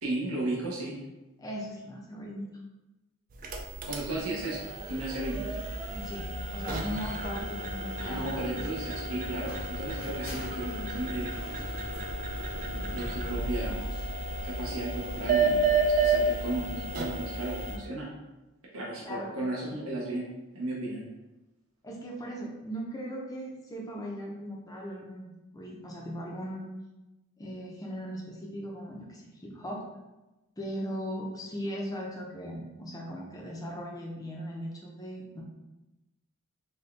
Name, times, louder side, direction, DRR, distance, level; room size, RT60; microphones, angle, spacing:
voice 1, 0.0-0.9 3.9-5.4 8.0-11.3 12.7-13.9 14.4-18.1 18.7-20.2 20.5-21.0, right 2 dB, 70° right, -4 dB, 0.8 m, -35 dB
voice 2, 1.4-2.5 5.9-9.0 19.1-19.3 21.8-26.8 27.4-29.8 30.6-35.4, equal, 15° left, -2 dB, 0.6 m, -38 dB
sound 1, 3.3-17.8, right 3 dB, 35° right, 0.4 m, -32 dB
sound 2, 9.5-15.2, equal, 65° left, 0.8 m, -46 dB
4.2 x 2.2 x 3.3 m, 1.0 s
head